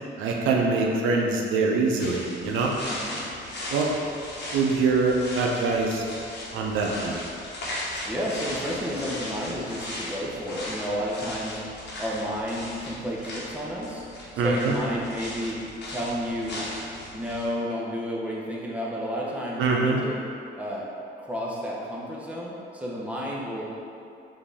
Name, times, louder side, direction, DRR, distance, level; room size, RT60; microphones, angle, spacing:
voice 1, 0.2-2.7 3.7-3.9 4.5-6.0 6.5-7.2 14.4-14.8 19.6-20.0, right 4 dB, 85° right, -1 dB, 0.5 m, -24 dB
sound 1, 2.0-17.5, left 1 dB, 60° left, 1.1 m, -37 dB
voice 2, 2.9-3.2 8.0-11.6 12.0-14.0 14.3-15.6 15.9-16.7 17.1-20.2 20.6-20.9 21.2-23.8, equal, 5° right, -5 dB, 0.8 m, -31 dB
5.2 x 2.7 x 3.4 m, 2.6 s
cardioid pair, 90°, 20 cm